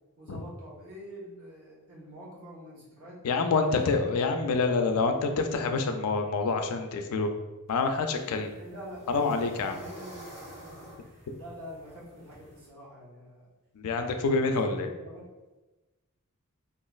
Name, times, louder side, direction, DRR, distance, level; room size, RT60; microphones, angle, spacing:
voice 1, 0.2-3.2 3.6-4.6 8.5-9.3 9.7-13.4 14.0-15.3, equal, 65° right, -6 dB, 1.0 m, -46 dB
voice 2, 3.2-7.3 7.7-8.5 9.1-9.8 13.8-14.9, left 4 dB, 75° left, 5 dB, 0.4 m, -27 dB
sound 1, 7.7-12.7, equal, 30° right, 1.1 m, -50 dB
3.0 x 2.4 x 2.3 m, 1.1 s
head